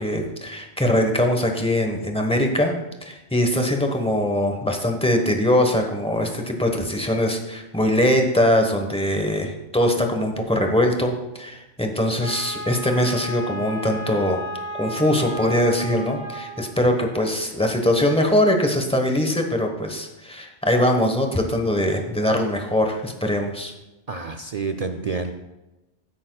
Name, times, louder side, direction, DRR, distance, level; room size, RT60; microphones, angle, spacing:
voice 1, 0.0-2.7 3.0-14.4 14.8-23.7, left 1 dB, 5° left, 3 dB, 1.1 m, -22 dB
Wind instrument woodwind instrument, 12.2-16.7, equal, 35° left, 2.2 m, -34 dB
voice 2, 24.1-25.3, right 4 dB, 50° right, 6 dB, 0.4 m, -28 dB
16.0 x 8.7 x 2.3 m, 1.0 s
omnidirectional pair, 1.2 m